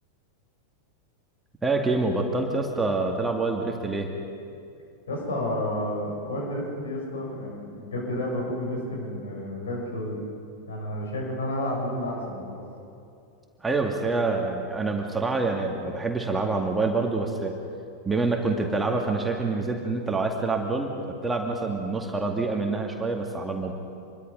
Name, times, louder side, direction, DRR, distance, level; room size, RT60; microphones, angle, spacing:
voice 1, 1.6-4.1 13.6-17.6 18.1-23.7, right 3 dB, 10° right, 2 dB, 2.2 m, -26 dB
voice 2, 5.1-10.2 10.7-12.6, left 1 dB, 65° left, -1 dB, 7.5 m, -31 dB
27.0 x 22.5 x 5.5 m, 2.5 s
figure-of-eight pair, 90°, 0 cm